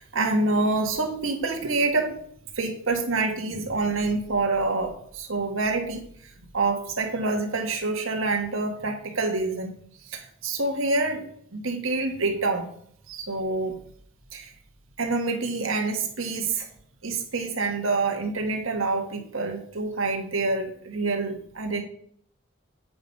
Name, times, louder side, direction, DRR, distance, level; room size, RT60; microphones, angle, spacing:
voice 1, 0.0-2.2 2.6-6.1 6.5-9.7 10.1-11.2 11.5-12.7 13.1-13.8 14.3-14.5 15.0-16.7 17.0-21.8, right 3 dB, 90° right, 4 dB, 1.6 m, -27 dB
8.8 x 5.1 x 5.4 m, 0.63 s
head